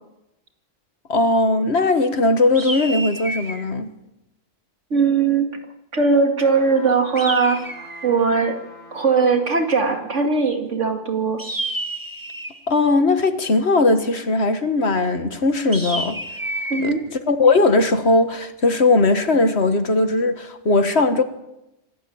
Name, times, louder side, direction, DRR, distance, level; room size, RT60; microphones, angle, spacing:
voice 1, 1.1-3.9 12.7-16.2 16.8-16.9 17.3-21.2, left 2 dB, 60° left, 1.9 m, -18 dB
sound 1, 2.5-3.7 7.2-8.2 11.4-12.7 15.7-16.9, right 1 dB, 15° right, 2.0 m, -30 dB
voice 2, 4.9-5.5 5.9-8.5 8.9-11.4 16.7-17.0, right 4 dB, 75° right, 2.7 m, -19 dB
sound 2, 6.5-10.1 10.7-10.8, left 1 dB, 55° right, 5.5 m, -44 dB
26.0 x 12.5 x 8.7 m
omnidirectional pair, 1.3 m